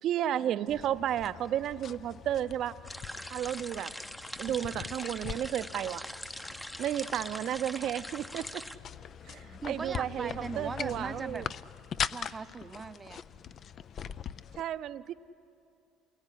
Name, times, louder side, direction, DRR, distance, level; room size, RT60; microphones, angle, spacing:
voice 1, 0.0-2.7 3.3-3.9 4.4-6.1 6.8-8.6 9.3-11.5 14.6-15.1, right 11 dB, 55° right, 13 dB, 0.7 m, -32 dB
sound 1, 0.7-14.6, left 8 dB, 45° left, 0.5 m, -42 dB
sound 2, 2.8-8.8, equal, 5° left, 0.8 m, -42 dB
voice 2, 9.6-11.4 12.1-13.2, right 4 dB, 25° right, 10 dB, 0.8 m, -39 dB
28.0 x 18.5 x 10.0 m, 2.6 s
cardioid pair, 105°, 0 cm